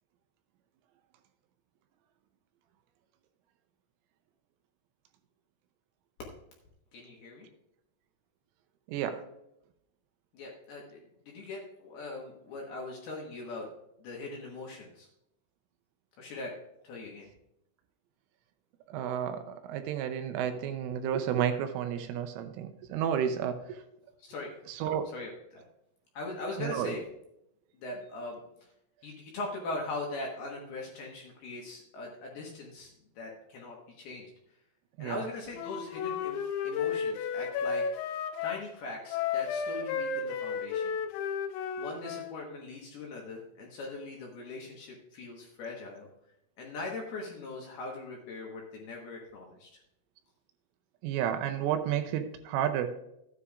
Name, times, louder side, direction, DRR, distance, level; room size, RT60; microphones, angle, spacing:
voice 1, 6.9-7.5 10.3-13.7 14.0-15.1 16.2-16.5 16.8-17.3 24.2-24.5 25.1-25.6 26.1-27.0 27.7-28.4 29.0-34.6 35.0-36.4 36.6-41.0 41.8-46.1 46.6-49.7, left 2 dB, 65° left, -1 dB, 2.7 m, -41 dB
voice 2, 8.9-9.3 18.9-23.8 24.7-25.1 26.6-27.0 35.0-35.2 51.0-52.9, right 9 dB, 85° right, 8 dB, 3.1 m, -31 dB
Wind instrument woodwind instrument, 35.5-38.6 39.1-42.3, left 6 dB, 80° left, 3.4 m, -33 dB
14.0 x 9.8 x 2.5 m, 0.81 s
omnidirectional pair, 6.0 m